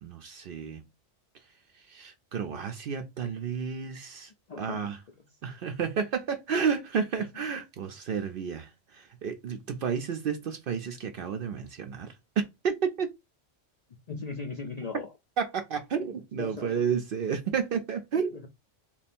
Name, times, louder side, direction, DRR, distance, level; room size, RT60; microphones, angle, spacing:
voice 1, 0.0-0.8 1.9-4.3 4.6-5.0 5.4-13.1 15.4-18.4, right 6 dB, 60° right, 0.6 m, -31 dB
voice 2, 4.5-4.9 14.1-15.1 16.4-16.8 18.3-18.5, left 4 dB, 55° left, 0.4 m, -38 dB
3.3 x 2.3 x 4.2 m
omnidirectional pair, 1.2 m